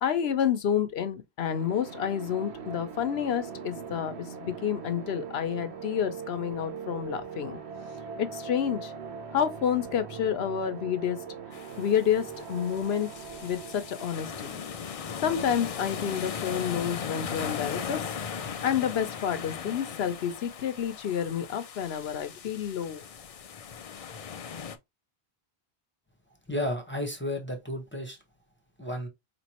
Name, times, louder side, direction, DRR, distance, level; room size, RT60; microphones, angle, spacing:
voice 1, 0.0-4.1 4.4-7.6 8.2-8.9 9.3-11.2 11.8-13.1 13.4-14.5 15.2-18.0 18.6-23.0, left 8 dB, 75° left, 0.9 m, -29 dB
sound 1, 1.4-16.1, right 6 dB, 90° right, 1.1 m, -41 dB
sound 2, 11.5-24.8, left 7 dB, 55° left, 0.4 m, -38 dB
voice 2, 26.5-28.2 28.8-29.1, left 1 dB, 10° left, 1.0 m, -32 dB
4.8 x 3.1 x 2.9 m
omnidirectional pair, 1.1 m